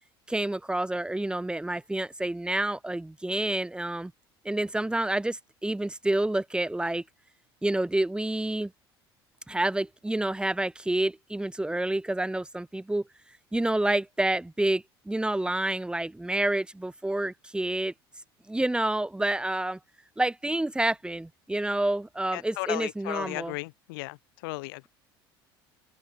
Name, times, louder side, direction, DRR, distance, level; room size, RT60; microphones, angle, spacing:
voice 1, 0.3-4.1 4.4-7.0 7.6-8.7 9.5-13.0 13.5-17.9 18.5-19.8 20.2-23.5, right 1 dB, 5° right, 2.2 m, -28 dB
voice 2, 22.3-24.2 24.4-24.9, left 25 dB, 60° left, 1.6 m, -35 dB
open air
figure-of-eight pair, 65°, 13 cm